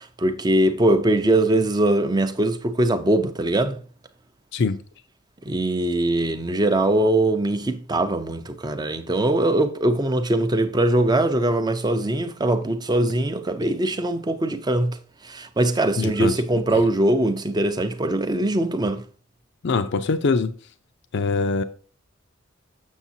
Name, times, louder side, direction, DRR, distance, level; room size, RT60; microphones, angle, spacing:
voice 1, 0.0-3.8 5.5-15.0 15.2-19.0, right 1 dB, 20° right, 0.6 m, -21 dB
voice 2, 16.0-16.3 16.7-16.8 19.6-20.5 21.1-21.6, left 4 dB, 60° left, 0.5 m, -23 dB
7.2 x 6.4 x 2.7 m
head